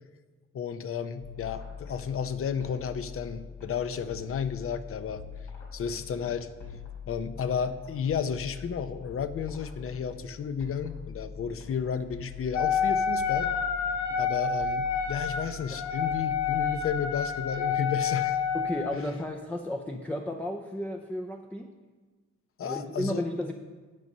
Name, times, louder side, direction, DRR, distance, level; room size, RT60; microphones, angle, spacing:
voice 1, 0.5-5.2 5.7-6.8 7.1-13.5 14.2-18.4 18.9-19.0 22.6-23.2, left 7 dB, 45° left, 12 dB, 0.7 m, -32 dB
sound 1, 1.2-18.8, left 6 dB, 85° left, 2.7 m, -44 dB
Wind instrument woodwind instrument, 12.5-19.0, left 6 dB, 70° left, 1.0 m, -28 dB
voice 2, 18.5-21.7 22.6-23.5, left 1 dB, 5° left, 2 dB, 0.5 m, -33 dB
11.0 x 5.3 x 5.4 m, 1.3 s
cardioid pair, 90°, 30 cm